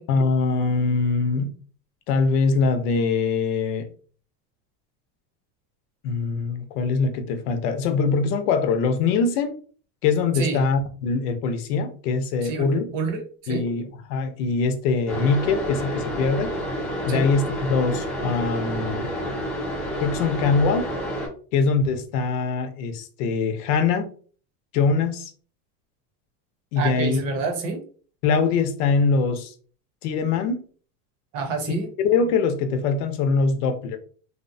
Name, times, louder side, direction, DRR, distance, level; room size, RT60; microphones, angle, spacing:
voice 1, 0.1-1.5 2.1-3.9 6.0-9.6 10.0-12.9 13.5-16.5 17.0-19.1 20.0-20.9 21.5-24.1 24.7-25.3 26.7-27.2 28.2-29.5 30.0-30.6 32.0-34.0, left 4 dB, 75° left, 0.7 m, -23 dB
voice 2, 12.4-13.6 17.1-17.3 26.8-27.8 31.3-31.9, right 3 dB, 50° right, 0.8 m, -28 dB
sound 1, 15.1-21.3, equal, ahead, 0.3 m, -29 dB
2.8 x 2.1 x 2.5 m
supercardioid pair, 150°, 47 cm